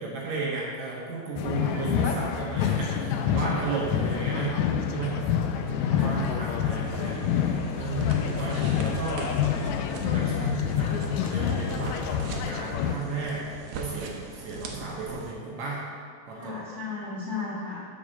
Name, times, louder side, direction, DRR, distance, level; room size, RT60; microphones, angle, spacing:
voice 1, 0.0-4.5 4.9-5.1 5.6-9.3 10.0-12.0 12.3-15.8 16.3-16.6, right 3 dB, 65° right, -4 dB, 2.1 m, -34 dB
sound 1, 1.4-13.0, left 8 dB, 85° left, 1.6 m, -27 dB
voice 2, 1.6-2.1 5.8-6.2 16.3-17.8, left 4 dB, 35° left, -9 dB, 1.2 m, -36 dB
sound 2, 6.8-15.3, right 4 dB, 85° right, 1.3 m, -41 dB
5.9 x 5.1 x 6.4 m, 2.2 s
omnidirectional pair, 3.7 m